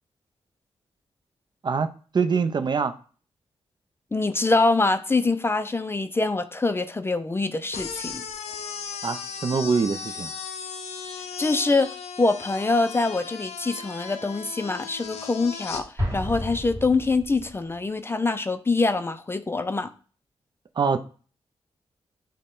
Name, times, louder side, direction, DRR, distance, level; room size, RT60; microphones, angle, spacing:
voice 1, 2.1-2.9 9.0-10.3 20.8-21.0, right 5 dB, 45° right, 0.5 m, -24 dB
voice 2, 4.1-8.2 11.4-11.9 12.2-15.8 16.1-19.9, left 3 dB, 20° left, 0.4 m, -24 dB
sound 1, 7.7-15.8, left 6 dB, 85° left, 0.6 m, -36 dB
Explosion, 16.0-17.7, equal, 25° right, 2.1 m, -31 dB
6.3 x 2.1 x 3.7 m
cardioid pair, 80°, 11 cm